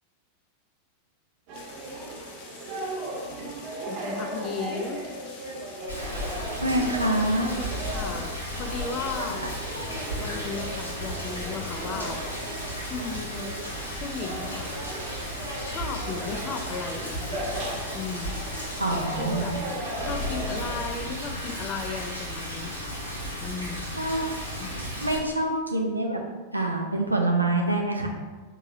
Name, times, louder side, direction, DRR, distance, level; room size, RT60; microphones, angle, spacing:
sound 1, 1.5-19.0, left 3 dB, 50° left, 0.8 m, -47 dB
sound 2, 1.5-20.8, right 1 dB, 45° right, 0.9 m, -37 dB
voice 1, 3.9-5.0 7.9-9.4 10.1-12.3 12.9-13.6 14.0-14.7 15.6-17.5 17.9-18.4 18.9-19.5 20.0-23.0 23.4-23.9 24.6-24.7, left 5 dB, 35° left, 5 dB, 0.4 m, -35 dB
Rain, 5.9-25.2, equal, 80° left, 1.2 m, -35 dB
voice 2, 6.6-7.6 9.4-9.5 9.9-10.0 18.8-19.5 23.9-24.3 24.8-26.2 26.5-28.1, right 1 dB, 85° right, 1 dB, 0.5 m, -26 dB
4.5 x 2.8 x 2.6 m, 1.3 s
figure-of-eight pair, 90°, 0 cm